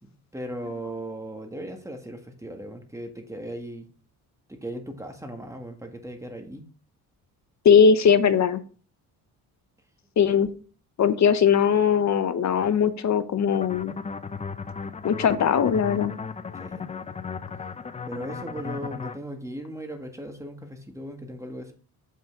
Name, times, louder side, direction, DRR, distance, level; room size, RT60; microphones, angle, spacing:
voice 1, 0.0-3.9 4.5-6.6 16.6-16.9 18.1-21.7, right 1 dB, 10° right, 1.7 m, -37 dB
voice 2, 7.6-8.6 10.2-10.5 11.0-13.9 15.0-16.1, left 7 dB, 45° left, 0.9 m, -20 dB
sound 1, 13.5-19.2, left 5 dB, 20° left, 0.4 m, -36 dB
7.4 x 5.7 x 3.6 m
cardioid pair, 80°, 38 cm